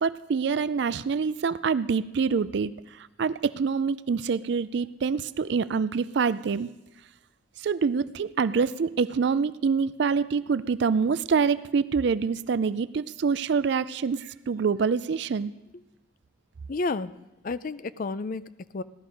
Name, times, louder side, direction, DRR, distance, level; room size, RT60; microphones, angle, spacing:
voice 1, 0.0-6.7 7.6-15.5, right 5 dB, 60° right, 16 dB, 0.4 m, -26 dB
voice 2, 16.7-17.1 17.4-18.8, left 3 dB, 45° left, 15 dB, 0.4 m, -31 dB
16.0 x 12.0 x 5.2 m, 0.95 s
head